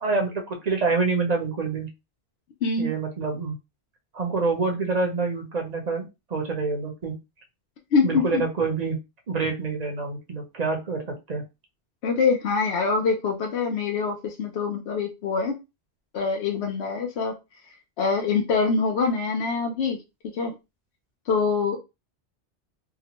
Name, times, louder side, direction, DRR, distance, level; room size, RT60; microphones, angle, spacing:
voice 1, 0.0-1.9 2.8-3.6 4.1-7.2 8.0-9.0 9.3-11.4, right 4 dB, 45° right, 2 dB, 0.7 m, -27 dB
voice 2, 7.9-8.4 12.0-15.6 16.1-17.4 18.0-20.0 20.3-20.5 21.3-21.8, left 5 dB, 70° left, 2 dB, 0.8 m, -24 dB
2.9 x 2.1 x 2.8 m, 0.25 s
omnidirectional pair, 1.2 m